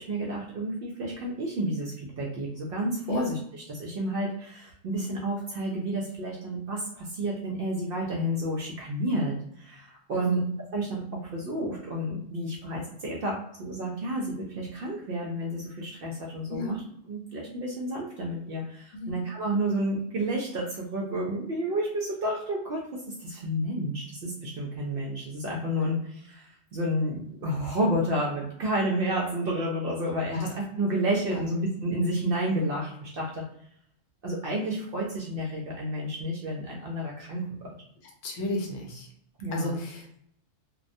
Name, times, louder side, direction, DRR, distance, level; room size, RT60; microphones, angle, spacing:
voice 1, 0.0-10.4 10.7-16.8 17.1-30.5 30.8-33.4 34.2-37.7 39.4-39.7, right 1 dB, 65° right, -3 dB, 0.6 m, -30 dB
voice 2, 10.1-10.4 16.5-16.8 18.9-19.2 30.3-30.4 31.3-31.5 38.2-39.1 39.5-40.1, left 1 dB, 75° left, 0 dB, 1.0 m, -32 dB
2.2 x 2.1 x 2.5 m, 0.70 s
omnidirectional pair, 1.4 m